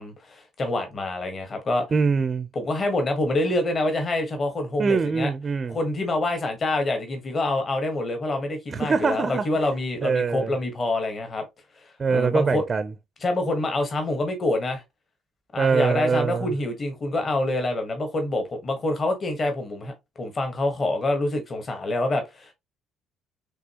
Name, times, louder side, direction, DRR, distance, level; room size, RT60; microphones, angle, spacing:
voice 1, 0.0-1.9 2.5-5.3 5.7-11.5 12.1-12.6 13.2-14.8 15.5-22.5, left 2 dB, 35° left, 1.2 m, -26 dB
voice 2, 1.9-2.5 4.8-5.8 8.7-9.5 10.0-10.5 12.0-12.9 15.6-16.5, right 5 dB, 30° right, 0.5 m, -23 dB
6.1 x 2.7 x 2.8 m
cardioid pair, 110°, 0 cm